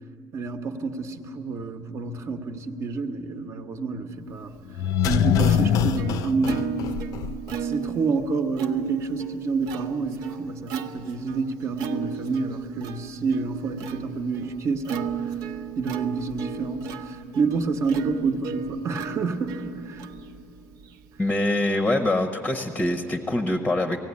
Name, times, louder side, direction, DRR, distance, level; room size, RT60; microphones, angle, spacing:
voice 1, 0.3-4.6 5.0-6.7 7.6-15.3 15.8-20.1, right 4 dB, 45° right, 7 dB, 1.1 m, -28 dB
Plucked string instrument, 4.6-21.3, right 8 dB, 65° right, 0.8 m, -35 dB
sound 1, 4.7-7.6 7.9-8.0, left 8 dB, 60° left, 0.6 m, -23 dB
voice 2, 21.2-24.0, left 1 dB, 10° left, 5 dB, 0.8 m, -24 dB
18.0 x 16.0 x 9.6 m, 3.0 s
cardioid pair, 145°, 7 cm